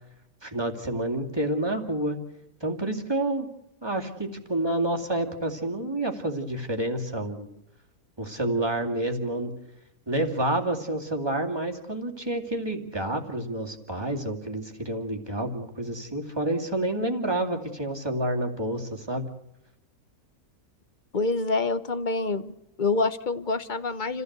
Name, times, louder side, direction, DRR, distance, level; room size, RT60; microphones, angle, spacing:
voice 1, 0.4-2.2 2.6-3.5 3.8-7.5 8.2-9.5 10.1-19.2, right 1 dB, 15° right, 2 dB, 2.4 m, -29 dB
voice 2, 21.1-24.2, left 3 dB, 35° left, 13 dB, 1.0 m, -27 dB
29.0 x 15.0 x 8.1 m, 0.86 s
omnidirectional pair, 1.6 m